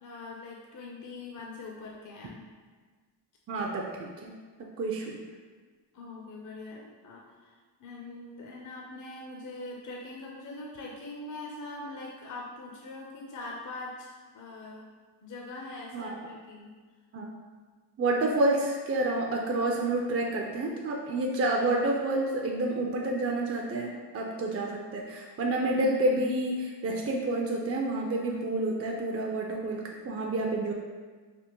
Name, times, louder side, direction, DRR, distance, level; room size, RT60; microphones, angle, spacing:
voice 1, 0.0-2.4 5.9-14.9 15.2-16.7, left 2 dB, 45° left, -2 dB, 0.5 m, -42 dB
voice 2, 3.5-4.3 4.8-5.2 15.9-16.2 17.1-17.3 18.0-30.7, right 2 dB, 35° right, 0 dB, 0.4 m, -29 dB
3.5 x 2.1 x 2.9 m, 1.5 s
cardioid pair, 60°, 45 cm